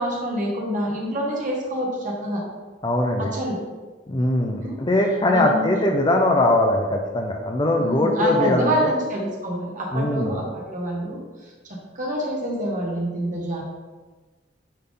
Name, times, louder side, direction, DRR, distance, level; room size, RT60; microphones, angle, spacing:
voice 1, 0.0-2.4 3.2-3.6 4.6-4.8 5.3-5.7 7.8-11.2 11.7-13.6, equal, 40° right, -2 dB, 1.6 m, -26 dB
voice 2, 2.8-3.3 4.1-8.9 9.9-10.4, left 1 dB, 25° left, 2 dB, 0.6 m, -21 dB
9.8 x 3.7 x 3.8 m, 1.3 s
head